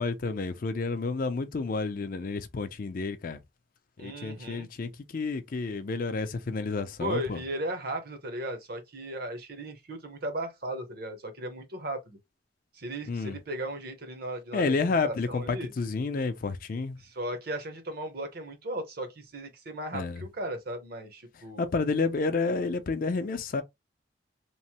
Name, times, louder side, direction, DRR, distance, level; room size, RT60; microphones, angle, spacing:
voice 1, 0.0-3.4 4.0-7.4 13.1-13.4 14.5-17.0 19.9-20.2 21.6-23.6, left 4 dB, 45° left, 0.4 m, -30 dB
voice 2, 4.0-4.7 7.0-12.2 12.7-14.8 15.0-15.7 17.0-21.6, right 1 dB, 55° right, 0.8 m, -36 dB
3.0 x 2.0 x 2.8 m
head